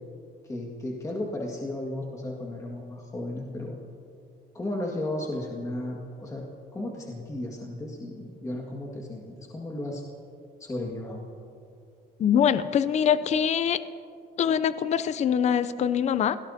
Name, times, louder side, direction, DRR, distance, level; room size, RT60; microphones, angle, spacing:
voice 1, 0.4-3.8 4.5-6.4 6.7-10.0 10.6-11.2, left 1 dB, 20° left, -1 dB, 1.9 m, -34 dB
voice 2, 12.2-13.8 14.4-16.4, left 8 dB, 40° left, 14 dB, 0.5 m, -23 dB
29.0 x 17.5 x 2.8 m, 2.4 s
cardioid pair, 110°, 17 cm